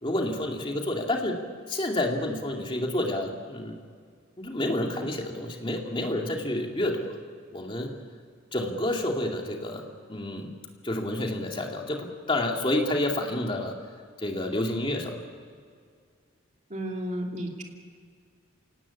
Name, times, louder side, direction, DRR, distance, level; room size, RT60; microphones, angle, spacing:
voice 1, 0.0-1.3 1.7-3.8 4.4-7.2 7.5-7.9 8.5-9.8 10.1-10.5 10.8-13.7 14.2-15.2, left 1 dB, 25° left, 1 dB, 2.4 m, -29 dB
voice 2, 16.7-17.6, right 1 dB, 35° right, 1 dB, 2.8 m, -32 dB
27.0 x 18.5 x 8.4 m, 2.1 s
head